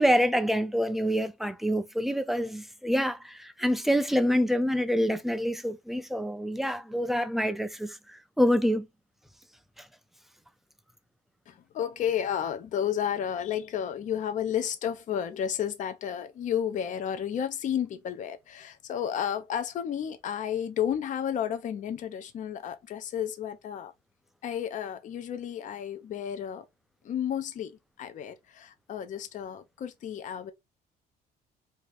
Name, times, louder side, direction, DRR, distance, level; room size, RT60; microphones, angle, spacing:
voice 1, 0.0-8.9 9.8-9.9, equal, ahead, 0.4 m, -26 dB
voice 2, 11.5-23.9 24.4-26.7 27.0-30.5, left 9 dB, 50° left, 0.5 m, -32 dB
2.8 x 2.5 x 3.2 m
cardioid pair, 110°, 17 cm